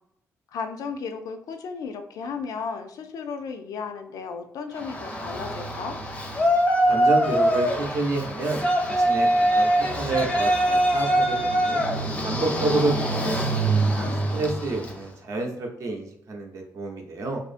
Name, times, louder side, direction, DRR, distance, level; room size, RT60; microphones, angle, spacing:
voice 1, 0.5-6.0, left 5 dB, 80° left, 6 dB, 0.4 m, -34 dB
Yell, 4.8-15.0, right 1 dB, 20° left, 0.5 m, -23 dB
voice 2, 6.9-11.8 12.2-17.4, right 2 dB, 60° right, 2 dB, 0.6 m, -29 dB
2.6 x 2.5 x 2.4 m, 0.74 s
cardioid pair, 135°, 6 cm